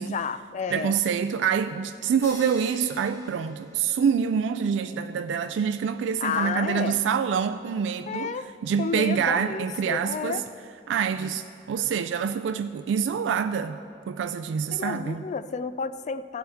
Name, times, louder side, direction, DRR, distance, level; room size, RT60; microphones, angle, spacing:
voice 1, 0.1-0.9 6.2-7.0 8.1-8.5 8.8-10.4 14.7-16.4, left 5 dB, 40° left, 13 dB, 0.3 m, -31 dB
voice 2, 0.7-8.3 8.6-10.4 10.9-13.8 14.1-15.2, right 7 dB, 75° right, 10 dB, 0.3 m, -26 dB
sound 1, 2.2-4.4, left 1 dB, 15° left, 1.2 m, -45 dB
15.5 x 7.8 x 3.5 m, 2.8 s
head